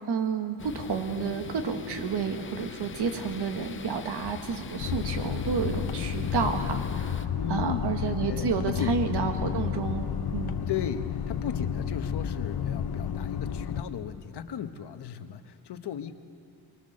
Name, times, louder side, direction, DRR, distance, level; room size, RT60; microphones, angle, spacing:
voice 1, 0.1-7.2 7.5-10.6, right 5 dB, 85° right, 6 dB, 1.7 m, -30 dB
sound 1, 0.6-7.3, left 7 dB, 30° left, 0.5 m, -41 dB
sound 2, 4.8-13.8, left 8 dB, 65° left, 0.8 m, -31 dB
voice 2, 7.4-9.1 10.7-16.1, left 8 dB, 90° left, 9 dB, 1.1 m, -36 dB
23.0 x 21.0 x 6.6 m, 2.6 s
wide cardioid pair, 170°, 39 cm